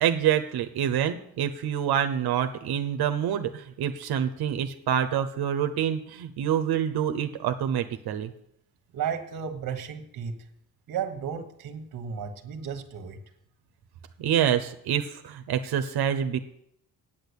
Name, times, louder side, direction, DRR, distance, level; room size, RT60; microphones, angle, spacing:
voice 1, 0.0-8.3 14.2-16.4, right 9 dB, 90° right, 8 dB, 1.0 m, -26 dB
voice 2, 8.9-10.4 10.9-13.2, right 7 dB, 60° right, 7 dB, 1.5 m, -33 dB
8.9 x 8.8 x 8.4 m, 0.72 s
cardioid pair, 145°, 37 cm